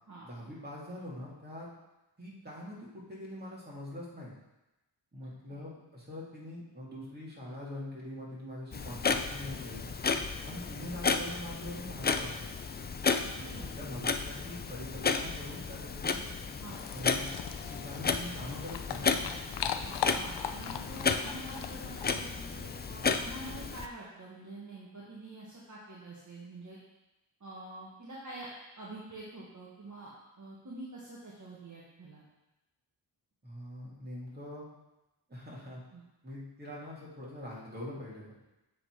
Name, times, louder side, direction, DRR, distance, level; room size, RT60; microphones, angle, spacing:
voice 1, 0.2-1.7 2.2-4.3 5.1-9.9 10.4-12.5 13.4-16.2 16.9-17.3 17.6-19.3 33.4-34.6 35.3-35.8 36.2-38.3, left 1 dB, 20° right, -6 dB, 2.6 m, -43 dB
Clock, 8.7-23.9, left 5 dB, 25° left, 0.4 m, -33 dB
voice 2, 13.2-13.7 16.6-16.8 19.8-26.8 27.4-30.1 30.4-32.2 35.9-36.0, right 2 dB, 40° right, -6 dB, 1.6 m, -46 dB
sound 1, 16.7-22.3, left 9 dB, 65° left, 0.6 m, -39 dB
7.8 x 4.0 x 4.8 m, 0.99 s
cardioid pair, 70°, 45 cm